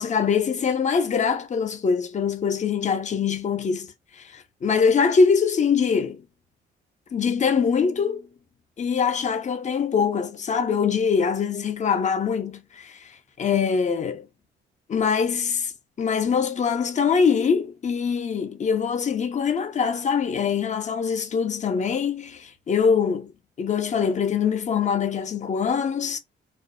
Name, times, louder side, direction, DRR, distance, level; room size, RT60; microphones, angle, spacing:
voice 1, 0.0-6.2 7.1-8.3 8.8-13.1 13.4-14.3 14.9-15.7 16.0-23.3 23.6-26.2, left 6 dB, 35° left, 0.5 m, -23 dB
2.4 x 2.0 x 2.5 m
cardioid pair, 90°, 20 cm